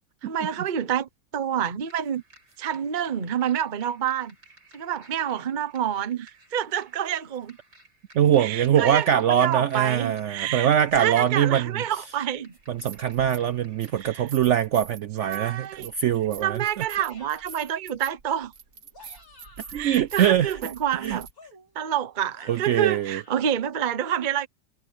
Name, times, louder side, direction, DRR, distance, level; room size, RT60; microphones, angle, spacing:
voice 1, 0.2-2.2 2.6-4.3 4.7-7.6 8.4-10.7 11.0-12.5 14.0-14.3 15.2-15.9 16.4-18.5 19.7-21.3 21.7-24.5, right 10 dB, 35° right, 0.9 m, -28 dB
sound 1, 1.8-14.1, right 2 dB, 70° right, 8.2 m, -56 dB
voice 2, 8.1-11.7 12.7-16.9 19.7-20.6 21.0-21.2 22.5-23.2, right 10 dB, 90° right, 0.6 m, -23 dB
sound 2, 12.6-13.5 13.8-21.3, right 6 dB, 50° right, 1.8 m, -45 dB
sound 3, 17.0-17.8 18.7-19.9 21.3-23.5, left 2 dB, 55° left, 7.2 m, -52 dB
omnidirectional pair, 1.9 m